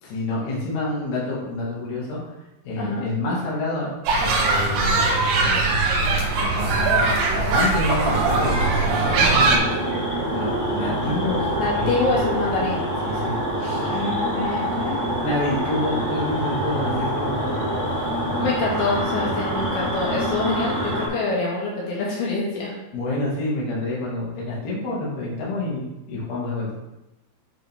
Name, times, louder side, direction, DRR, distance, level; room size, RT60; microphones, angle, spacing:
voice 1, 0.0-2.2 2.6-5.8 6.4-8.5 8.9-9.7 10.3-12.2 13.0-14.1 15.2-17.6 22.9-26.7, left 2 dB, 50° left, -6 dB, 2.5 m, -28 dB
sound 1, 4.0-9.6, right 3 dB, 75° right, 2.0 m, -20 dB
sound 2, 8.1-21.1, equal, 30° left, 0.7 m, -26 dB
voice 2, 11.6-12.8 13.8-15.0 18.4-22.7, left 3 dB, 80° left, -5 dB, 4.4 m, -25 dB
8.8 x 4.9 x 3.6 m, 0.96 s
omnidirectional pair, 5.6 m